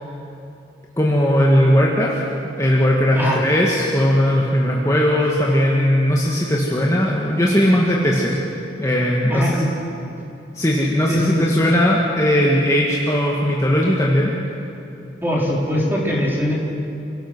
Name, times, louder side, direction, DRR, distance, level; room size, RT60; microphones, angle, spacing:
voice 1, 1.0-2.2 2.6-8.4 8.8-9.7 10.5-14.3, equal, 15° left, -4 dB, 2.1 m, -18 dB
voice 2, 9.3-9.7 11.1-11.5 15.2-16.5, equal, 10° right, -4 dB, 4.5 m, -21 dB
29.0 x 17.5 x 6.3 m, 2.7 s
head